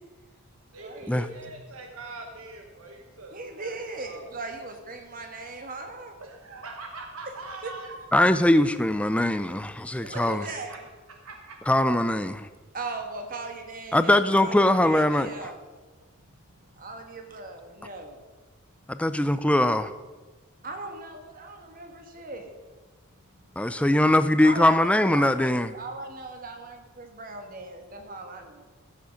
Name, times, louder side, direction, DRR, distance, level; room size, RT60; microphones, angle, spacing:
voice 1, 0.7-4.3 6.2-8.0 10.0-10.8 11.2-11.6 23.6-23.9, right 2 dB, 80° right, 3 dB, 1.1 m, -42 dB
voice 2, 3.3-6.2 7.6-7.7 10.0-10.8 12.7-15.6 16.8-18.2 20.6-22.5 24.4-28.6, right 3 dB, 40° right, 5 dB, 1.5 m, -38 dB
voice 3, 8.1-10.5 11.7-12.5 13.9-15.3 18.9-19.9 23.6-25.7, left 1 dB, 5° left, 12 dB, 0.4 m, -21 dB
14.0 x 7.4 x 5.2 m, 1.3 s
head